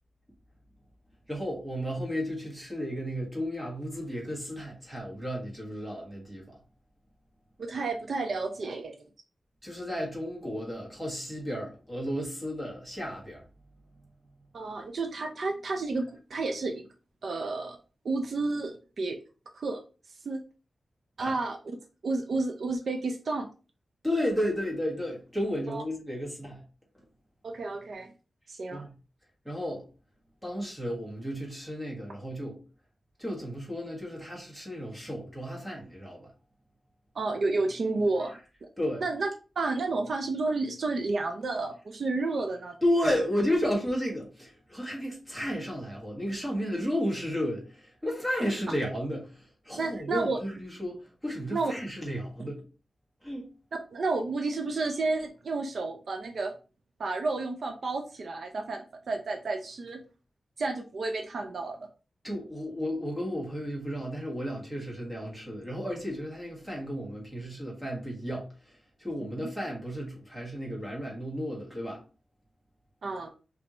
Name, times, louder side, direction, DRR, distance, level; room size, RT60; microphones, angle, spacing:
voice 1, 1.3-6.6 9.6-13.4 21.2-21.3 24.0-26.6 28.7-28.9 29.4-29.8 30.4-32.6 33.2-36.3 38.8-39.0 42.8-52.6 53.2-53.5 62.2-68.5 69.0-72.0, equal, 5° right, 1.6 m, -33 dB
voice 2, 7.6-8.9 14.5-16.9 17.2-17.8 18.0-19.2 19.5-19.8 20.2-20.4 21.2-21.8 22.0-23.5 25.7-25.8 27.4-28.1 28.5-28.8 37.1-38.3 38.6-38.7 39.0-39.3 39.6-42.8 49.8-50.4 51.5-51.7 53.9-56.5 57.0-60.0 60.6-61.9 69.4-69.5 73.0-73.3, right 3 dB, 60° right, 0.5 m, -31 dB
5.3 x 2.8 x 2.9 m
wide cardioid pair, 155°, 0 cm